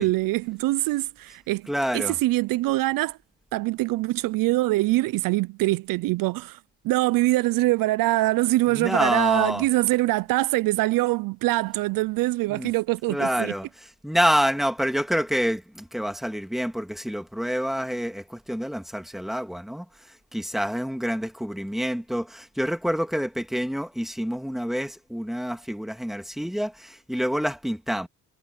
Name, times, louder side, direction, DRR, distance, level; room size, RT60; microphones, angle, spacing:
voice 1, 0.0-3.2 3.5-6.6 6.8-13.5, right 18 dB, 75° right, 0.6 m, -24 dB
voice 2, 1.7-2.1 8.7-9.6 12.5-12.7 13.1-13.7 14.0-19.9 20.3-28.1, equal, ahead, 2.4 m, -27 dB
supercardioid pair, 85°, 34 cm